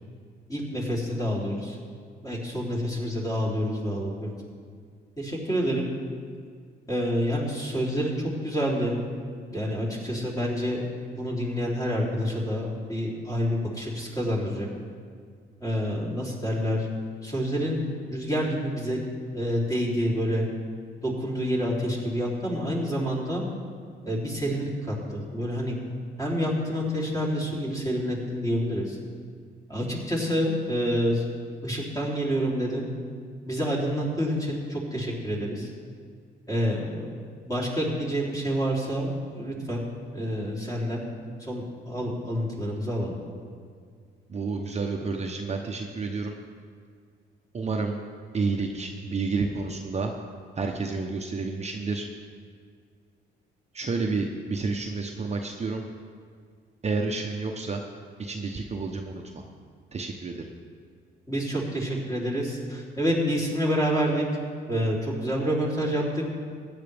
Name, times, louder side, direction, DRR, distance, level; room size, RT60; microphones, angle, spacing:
voice 1, 0.5-1.8 2.2-4.3 5.2-5.8 6.9-8.1 8.4-9.0 9.5-10.8 11.1-14.7 15.6-16.9 17.2-17.8 18.1-19.0 19.3-20.5 21.0-23.4 24.0-25.8 26.2-29.0 29.7-31.2 31.6-32.9 33.5-35.7 36.5-37.1 37.5-39.8 40.1-41.0 41.4-43.1 61.3-64.3 64.7-66.2, equal, 15° left, -5 dB, 3.4 m, -28 dB
voice 2, 44.3-46.4 47.5-48.0 48.3-50.1 50.6-52.1 53.7-55.8 56.8-57.8 58.2-59.4 59.9-60.5, right 4 dB, 35° right, 2 dB, 0.9 m, -30 dB
16.0 x 9.8 x 3.5 m, 2.1 s
cardioid pair, 90°, 20 cm